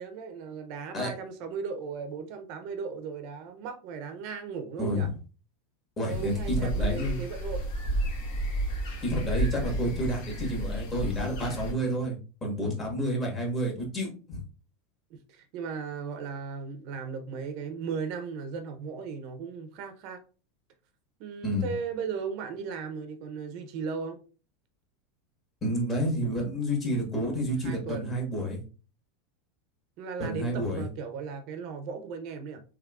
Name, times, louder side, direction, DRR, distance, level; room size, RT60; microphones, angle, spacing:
voice 1, 0.0-5.1 6.1-7.7 9.5-9.8 15.1-20.2 21.2-24.2 27.6-28.3 30.0-32.6, right 5 dB, 50° right, 0.6 m, -37 dB
voice 2, 4.8-5.1 6.0-7.2 9.0-14.4 21.4-21.7 25.6-28.6 30.2-30.9, equal, 20° left, 1.4 m, -30 dB
sound 1, 6.1-11.7, right 1 dB, 60° left, 1.4 m, -31 dB
3.5 x 3.3 x 2.4 m
supercardioid pair, 150°, 0 cm